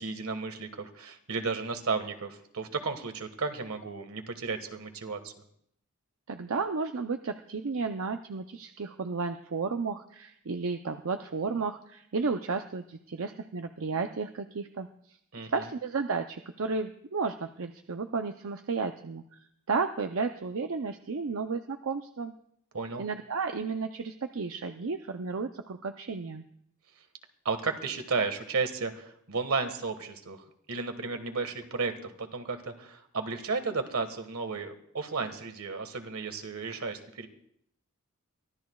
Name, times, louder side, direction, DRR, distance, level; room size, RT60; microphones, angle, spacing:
voice 1, 0.0-5.3 15.3-15.7 22.7-23.0 27.4-37.3, right 4 dB, 85° right, 7 dB, 1.6 m, -33 dB
voice 2, 6.3-14.9 15.5-19.2 19.7-22.3 23.0-26.4, right 4 dB, 70° right, 6 dB, 0.6 m, -33 dB
23.5 x 15.5 x 2.3 m, 0.69 s
head